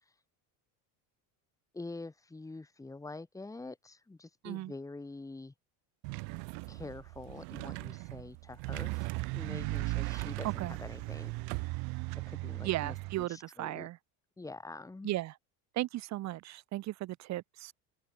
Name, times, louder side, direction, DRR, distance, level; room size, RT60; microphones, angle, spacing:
voice 1, 1.7-5.5 6.7-9.1 9.3-11.7 12.3-13.9 14.4-15.1, left 3 dB, 10° left, 3.9 m, -46 dB
sound 1, 6.0-12.0, right 40 dB or more, 75° right, 6.4 m, -43 dB
sound 2, 8.6-13.2, right 24 dB, 60° right, 3.5 m, -37 dB
voice 2, 10.4-10.8 12.6-14.0 15.0-15.3 15.7-17.7, right 16 dB, 40° right, 1.3 m, -36 dB
open air
cardioid pair, 160°, 41 cm